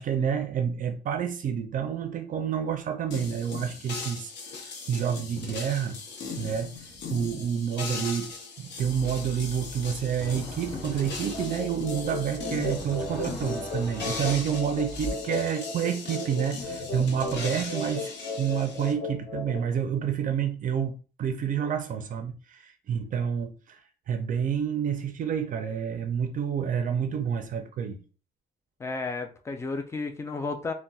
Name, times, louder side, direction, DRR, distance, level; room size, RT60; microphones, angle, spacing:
voice 1, 0.0-6.0 6.4-6.7 7.1-8.3 8.6-18.1 18.4-23.8 24.1-28.0, right 8 dB, 50° right, 0.4 m, -29 dB
sound 1, 3.1-18.9, left 4 dB, 80° left, 0.7 m, -39 dB
sound 2, 8.8-15.1, equal, ahead, 0.7 m, -42 dB
sound 3, 11.3-19.6, left 2 dB, 55° left, 1.3 m, -35 dB
voice 2, 28.8-30.7, left 3 dB, 15° left, 0.3 m, -32 dB
3.9 x 2.1 x 2.3 m
cardioid pair, 165°, 18 cm